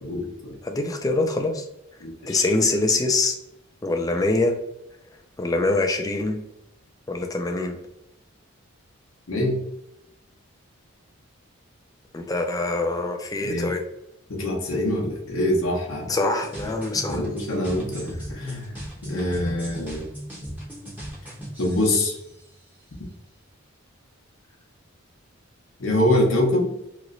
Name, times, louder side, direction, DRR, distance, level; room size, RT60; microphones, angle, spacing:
voice 1, 0.0-0.6 2.0-2.5 9.3-9.6 13.4-13.7 14.3-16.1 17.1-20.0 21.6-22.2 25.8-26.7, left 1 dB, 70° left, -1 dB, 0.8 m, -25 dB
voice 2, 0.6-1.6 2.3-3.4 3.8-4.6 5.4-6.4 7.1-7.8 12.1-13.8 16.1-17.2, left 2 dB, 15° left, 4 dB, 0.4 m, -24 dB
sound 1, 16.4-22.6, equal, 10° right, 0.8 m, -38 dB
3.0 x 2.9 x 2.5 m, 0.83 s
head